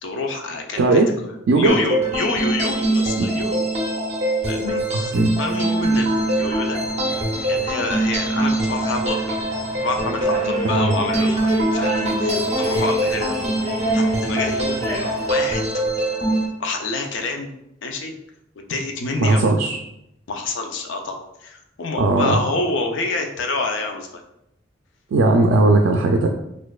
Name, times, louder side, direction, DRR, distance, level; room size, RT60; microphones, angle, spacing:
voice 1, 0.0-3.7 4.5-5.1 5.4-6.8 7.5-9.4 9.8-13.4 13.9-14.9 15.3-15.7 16.6-17.5 17.8-18.1 18.6-19.5 20.3-24.2, left 2 dB, 75° left, 3 dB, 0.5 m, -27 dB
voice 2, 0.8-1.1 1.5-1.7 3.2-3.5 5.1-5.3 10.6-10.9 19.2-19.8 22.0-22.4 25.1-26.3, right 2 dB, 80° right, 2 dB, 0.3 m, -17 dB
sound 1, 1.7-16.5, right 1 dB, 35° right, 0.6 m, -23 dB
sound 2, 5.9-15.4, left 1 dB, 20° left, 0.6 m, -29 dB
4.2 x 2.5 x 2.3 m, 0.81 s
head